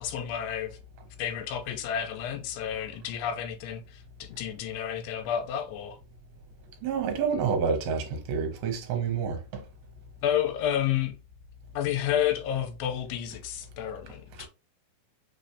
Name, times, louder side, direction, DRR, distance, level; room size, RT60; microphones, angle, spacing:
voice 1, 0.0-0.8 1.2-6.0 10.2-11.2 11.8-14.5, left 10 dB, 85° left, 2.7 m, -30 dB
voice 2, 6.8-9.6 14.4-14.5, right 6 dB, 70° right, 2.7 m, -28 dB
6.0 x 3.2 x 2.7 m
omnidirectional pair, 4.8 m